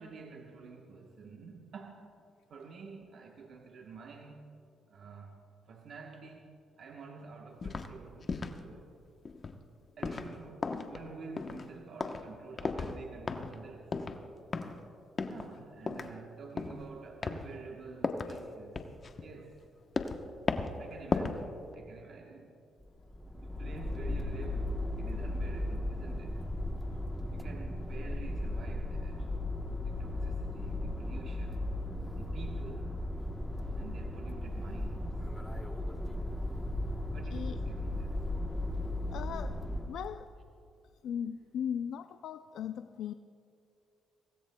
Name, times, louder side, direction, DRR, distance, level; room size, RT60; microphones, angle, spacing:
voice 1, 0.0-2.2 2.5-4.4 4.9-5.4 5.7-8.9 10.0-14.0 15.3-18.9 19.2-19.7 20.8-22.5 23.3-26.5 27.3-29.3 29.8-31.7 32.2-33.0 33.8-35.2 37.1-38.2, right 4 dB, 60° right, 1 dB, 1.1 m, -49 dB
sound 1, 7.6-7.9 8.2-8.6 9.3-9.6 10.0-10.4 10.6-11.1 11.4-11.7 12.0-12.3 12.6-13.0 13.3-13.6 13.9-14.2 14.5-14.8 15.2-15.5 15.9-16.1 16.6-16.9 17.2-17.5 18.0-18.4 18.8-19.6 20.0-20.2 20.5-20.8 21.1-21.4 21.7-21.8, left 4 dB, 40° left, 0.9 m, -35 dB
sound 2, 22.8-40.1, left 1 dB, ahead, 1.0 m, -36 dB
voice 2, 39.1-40.3 41.0-43.1, left 8 dB, 75° left, 9 dB, 0.3 m, -38 dB
23.5 x 17.5 x 2.2 m, 2.6 s
cardioid pair, 90°, 0 cm